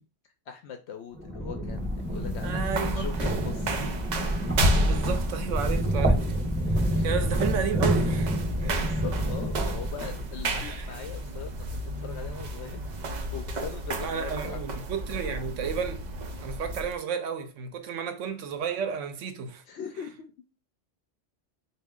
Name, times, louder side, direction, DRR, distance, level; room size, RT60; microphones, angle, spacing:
voice 1, 0.5-3.8 6.9-7.2 8.5-14.8 15.2-15.4 19.7-20.3, left 7 dB, 70° left, 0.8 m, -41 dB
sound 1, 1.1-10.4, equal, 10° right, 1.2 m, -28 dB
sound 2, 1.7-17.0, right 2 dB, 50° right, 0.6 m, -33 dB
voice 2, 2.4-3.1 4.8-8.8 10.6-10.9 14.0-16.1 16.4-19.6, right 7 dB, 90° right, 1.0 m, -33 dB
sound 3, 4.6-6.0, left 1 dB, 25° right, 1.7 m, -26 dB
4.1 x 2.5 x 3.6 m
omnidirectional pair, 1.2 m